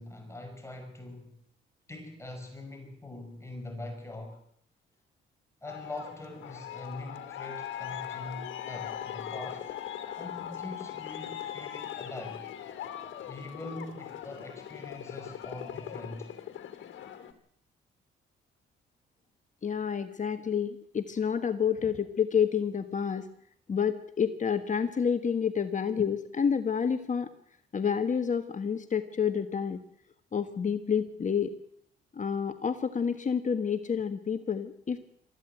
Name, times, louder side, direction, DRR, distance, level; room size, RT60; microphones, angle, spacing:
voice 1, 0.0-1.4 1.9-4.4 5.6-9.7 10.2-12.5 13.3-16.3, left 2 dB, 15° left, 3 dB, 5.5 m, -43 dB
Aircraft, 5.7-17.3, left 10 dB, 75° left, 2.6 m, -40 dB
voice 2, 19.6-23.3 23.7-27.3 27.7-29.8 30.3-31.5 32.1-35.0, left 7 dB, 40° left, 9 dB, 1.5 m, -29 dB
23.5 x 14.5 x 8.0 m, 0.68 s
cardioid pair, 90°, 20 cm